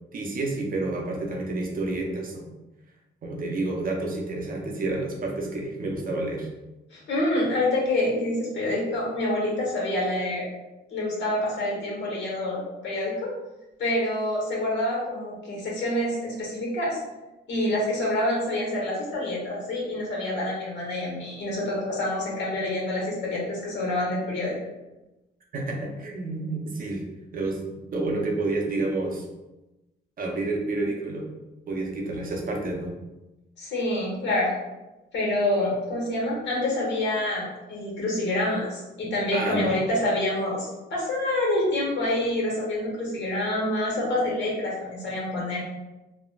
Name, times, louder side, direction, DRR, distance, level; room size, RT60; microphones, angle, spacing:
voice 1, 0.1-2.5 3.2-6.5 25.5-27.0 27.3-27.6 27.9-29.3 30.2-31.3 31.7-32.9 39.3-39.8, right 2 dB, 45° right, 0 dB, 0.6 m, -29 dB
voice 2, 6.9-10.5 10.9-13.3 13.8-17.0 17.5-24.6 33.6-34.5 35.1-45.6, left 1 dB, 65° left, -3 dB, 1.1 m, -27 dB
3.1 x 2.1 x 2.4 m, 1.0 s
cardioid pair, 90°, 20 cm